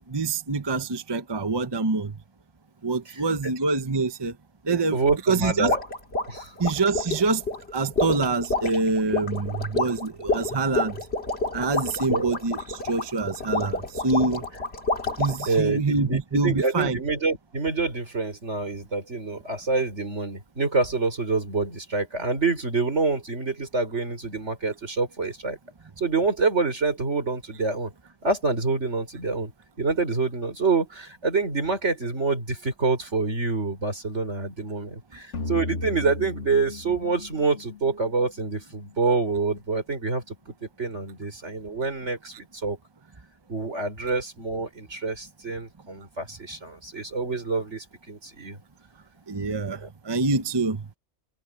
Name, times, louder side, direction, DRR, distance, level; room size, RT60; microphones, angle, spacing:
voice 1, 0.0-2.2 2.8-4.3 4.6-5.0 5.3-5.7 6.6-7.4 7.7-11.0 11.5-14.4 15.2-17.0 49.3-49.8 50.0-50.8, right 3 dB, 25° right, 0.9 m, -25 dB
voice 2, 4.7-5.8 6.3-6.5 12.1-12.3 15.5-25.6 26.0-27.9 28.2-29.5 29.8-40.3 40.6-42.8 43.5-48.6 49.8-49.9, right 4 dB, 75° right, 4.8 m, -27 dB
sound 1, 5.7-15.6, left 2 dB, 60° left, 2.9 m, -29 dB
sound 2, 35.3-38.6, left 3 dB, 75° left, 2.1 m, -35 dB
omnidirectional pair, 1.2 m